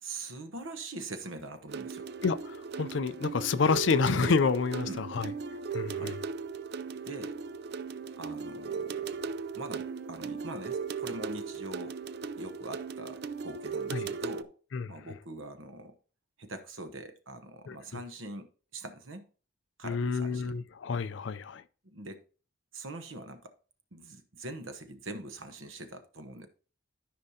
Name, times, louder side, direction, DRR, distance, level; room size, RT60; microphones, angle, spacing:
voice 1, 0.0-2.1 4.9-5.0 5.9-6.3 7.0-7.4 8.2-9.2 9.5-12.0 12.4-14.5 14.9-15.9 16.4-19.3 19.8-20.5 21.8-22.2 22.7-23.5 23.9-26.5, right 2 dB, 70° right, 1.0 m, -43 dB
bilateral loop, 1.7-14.4, right 5 dB, 50° right, 0.4 m, -37 dB
voice 2, 2.2-5.3 5.7-6.2 13.9-14.1 14.7-14.9 17.7-17.8 19.8-21.6, left 5 dB, 60° left, 0.4 m, -29 dB
13.0 x 5.3 x 2.7 m
head